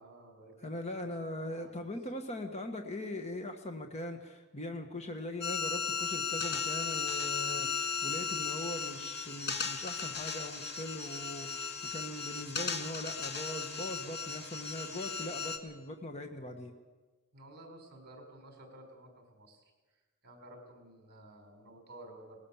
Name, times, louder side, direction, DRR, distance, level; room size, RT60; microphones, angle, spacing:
voice 1, 0.0-1.8 11.4-11.9 17.3-19.6 20.2-22.4, right 1 dB, 50° right, 4 dB, 4.8 m, -54 dB
voice 2, 0.6-16.7, left 1 dB, 30° left, 5 dB, 1.4 m, -41 dB
sound 1, 5.4-15.6, left 5 dB, 50° left, 1.6 m, -36 dB
19.5 x 19.5 x 7.2 m, 1.3 s
head